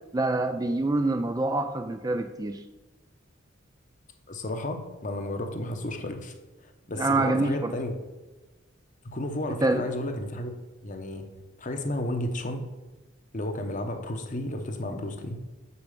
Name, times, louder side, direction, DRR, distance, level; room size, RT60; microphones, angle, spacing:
voice 1, 0.1-2.6 7.0-7.7 9.6-9.8, right 2 dB, 20° right, 8 dB, 0.4 m, -26 dB
voice 2, 4.3-6.3 6.6-8.0 9.0-10.5 10.8-11.3 11.6-12.7 13.3-15.4, left 1 dB, 40° left, 6 dB, 0.9 m, -32 dB
7.0 x 6.0 x 6.7 m, 1.1 s
head